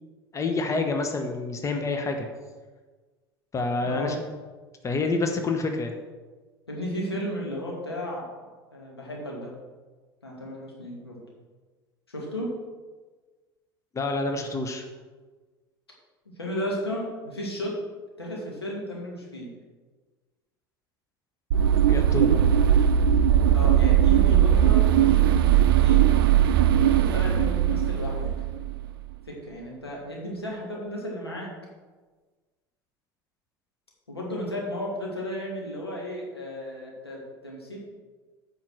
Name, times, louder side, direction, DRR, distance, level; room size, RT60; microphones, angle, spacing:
voice 1, 0.3-2.3 3.5-4.3 4.8-5.9 13.9-14.8 21.9-22.4, left 3 dB, 25° left, 4 dB, 1.2 m, -28 dB
voice 2, 3.8-4.2 6.7-9.5 10.2-11.2 12.1-12.5 16.4-17.8 18.2-19.5 23.5-25.3 25.8-26.0 26.8-28.3 29.3-31.5 34.1-37.8, equal, 90° left, -3 dB, 2.4 m, -34 dB
sound 1, 21.5-28.9, right 10 dB, 65° right, 0.5 m, -19 dB
8.7 x 5.7 x 6.2 m, 1.3 s
figure-of-eight pair, 70°, 13 cm